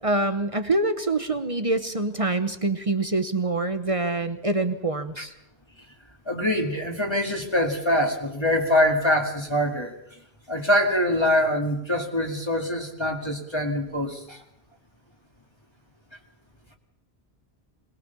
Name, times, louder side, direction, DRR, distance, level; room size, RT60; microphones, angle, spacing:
voice 1, 0.0-5.3, right 2 dB, 35° right, 10 dB, 1.1 m, -25 dB
voice 2, 6.3-9.9 10.5-14.4, left 1 dB, 25° left, 2 dB, 2.2 m, -24 dB
22.0 x 19.5 x 7.0 m, 0.77 s
omnidirectional pair, 1.1 m